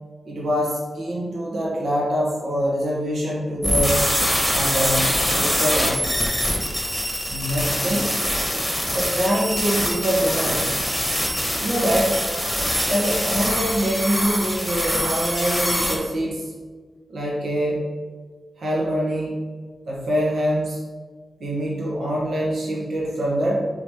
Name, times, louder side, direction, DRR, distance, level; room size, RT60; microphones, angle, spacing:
voice 1, 0.2-4.0 4.5-6.2 7.3-8.1 8.9-10.9 11.6-12.2 12.9-16.6 17.1-17.8 18.6-19.4 19.9-20.8 21.4-23.7, equal, 85° right, -4 dB, 1.3 m, -24 dB
sound 1, 3.6-16.0, equal, ahead, 1.2 m, -24 dB
4.8 x 4.0 x 4.9 m, 1.4 s
wide cardioid pair, 145°, 0 cm